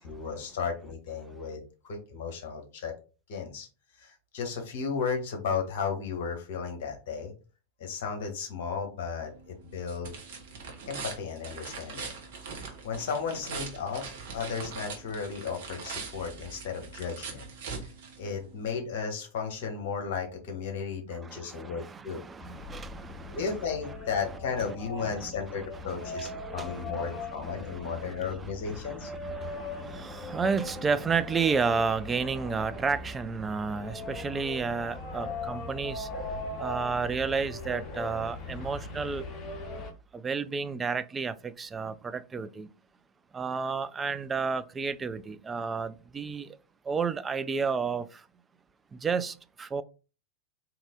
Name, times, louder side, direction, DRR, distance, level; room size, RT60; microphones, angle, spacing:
voice 1, 0.1-2.9 3.3-3.7 4.0-7.3 7.8-10.1 10.9-12.1 12.5-17.5 18.2-22.2 23.3-29.1, left 5 dB, 50° left, 1.3 m, -34 dB
sound 1, 9.2-18.6, right 5 dB, 55° right, 1.0 m, -42 dB
voice 2, 21.1-23.5 24.6-24.7 25.7-28.1 28.4-36.1 36.6-39.3 40.1-42.7 43.3-46.6 46.8-48.3 48.9-49.8, right 5 dB, 15° right, 0.3 m, -32 dB
sound 2, 22.4-39.9, left 2 dB, 25° left, 0.9 m, -40 dB
3.8 x 2.9 x 3.7 m
figure-of-eight pair, 90°, 0 cm